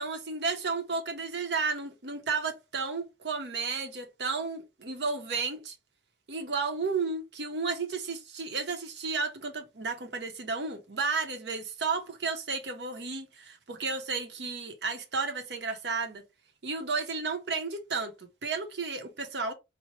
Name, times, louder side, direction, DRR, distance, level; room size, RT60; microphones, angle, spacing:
voice 1, 0.0-5.7 6.3-16.2 16.6-19.5, right 4 dB, 75° right, 0.8 m, -33 dB
4.3 x 2.1 x 3.1 m
head